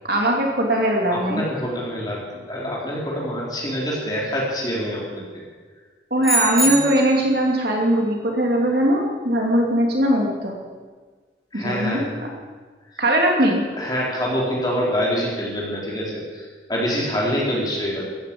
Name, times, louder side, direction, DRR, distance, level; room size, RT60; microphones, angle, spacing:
voice 1, 0.1-1.4 6.1-10.5 11.5-12.3 13.0-13.6, right 1 dB, 55° right, 0 dB, 2.9 m, -20 dB
voice 2, 1.1-2.2 2.5-5.4 6.5-6.8 11.5-12.1 13.8-18.0, equal, 20° left, -4 dB, 4.1 m, -26 dB
sound 1, 6.2-7.3, right 1 dB, ahead, 4.1 m, -23 dB
15.0 x 11.0 x 8.6 m, 1.4 s
head